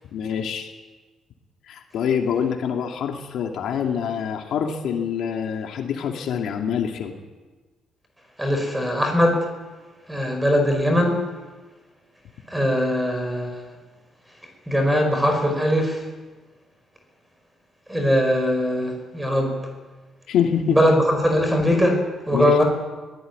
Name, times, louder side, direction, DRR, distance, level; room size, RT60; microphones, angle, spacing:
voice 1, 0.1-0.7 1.7-7.1 20.3-20.8 22.3-22.5, left 8 dB, 65° left, 2 dB, 2.5 m, -25 dB
voice 2, 8.4-9.5 10.1-11.2 12.5-13.7 14.7-16.1 17.9-19.6 20.7-22.6, equal, 5° right, 4 dB, 5.0 m, -21 dB
23.5 x 17.5 x 9.5 m, 1.3 s
cardioid pair, 165°, 0 cm